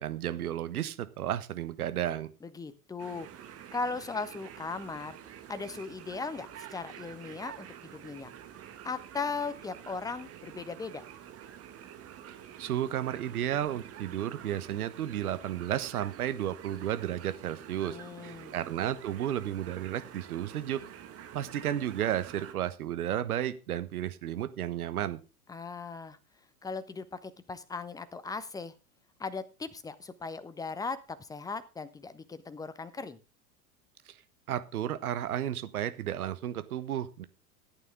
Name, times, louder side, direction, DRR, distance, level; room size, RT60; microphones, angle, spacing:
voice 1, 0.0-2.3 12.6-18.0 18.2-20.8 21.3-25.2 34.1-34.2 34.5-37.2, right 11 dB, 65° right, 12 dB, 1.3 m, -33 dB
voice 2, 2.4-3.3 3.7-5.2 5.5-8.3 8.8-11.0 17.9-18.6 25.5-26.2 26.6-28.7 29.2-33.2, left 4 dB, 10° left, 14 dB, 0.8 m, -38 dB
sound 1, 3.0-22.5, right 10 dB, 30° right, 1.7 m, -48 dB
14.0 x 9.0 x 3.6 m, 0.31 s
figure-of-eight pair, 90°, 48 cm